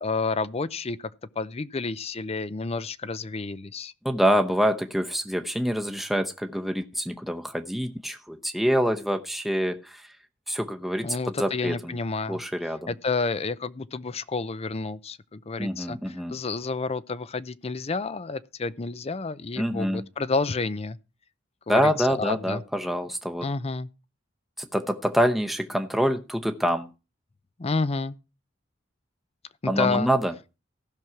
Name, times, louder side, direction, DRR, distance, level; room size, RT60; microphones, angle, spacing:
voice 1, 0.0-1.1 1.4-3.9 11.0-12.4 12.9-21.0 21.7-22.6 23.4-23.9 27.6-28.1 29.6-30.1, left 4 dB, 30° left, 0.5 m, -30 dB
voice 2, 4.0-10.0 10.5-12.0 12.3-12.9 15.6-16.3 19.6-20.0 21.7-23.5 24.6-26.9 29.7-30.3, equal, ahead, 0.9 m, -26 dB
15.5 x 6.3 x 5.8 m
head